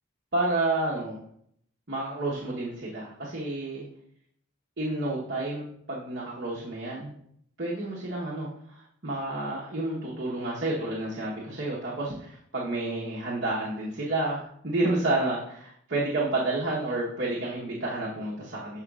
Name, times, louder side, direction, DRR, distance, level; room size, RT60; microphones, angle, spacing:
voice 1, 0.3-1.2 1.9-3.9 4.8-7.1 7.6-18.8, right 2 dB, 55° right, -5 dB, 1.1 m, -30 dB
11.5 x 4.0 x 2.4 m, 0.67 s
head